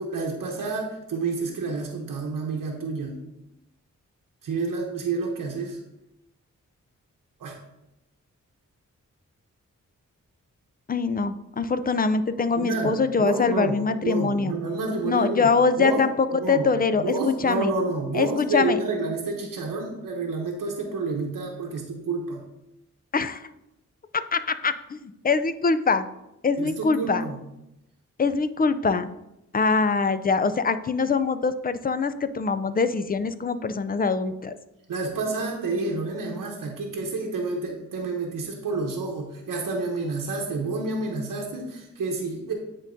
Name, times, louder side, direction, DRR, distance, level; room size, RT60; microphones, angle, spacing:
voice 1, 0.0-3.2 4.4-5.8 7.4-7.6 12.5-13.8 14.0-15.5 15.8-16.1 16.4-16.7 17.0-22.4 26.6-27.4 34.9-42.5, right 3 dB, 90° right, 0 dB, 0.9 m, -29 dB
voice 2, 10.9-14.5 15.0-16.1 16.5-17.1 17.4-17.7 18.1-18.8 23.1-23.5 24.1-26.1 26.4-27.2 28.2-29.1 29.5-34.5, left 4 dB, 30° left, 12 dB, 0.4 m, -23 dB
9.5 x 3.8 x 2.6 m, 0.88 s
cardioid pair, 65°, 32 cm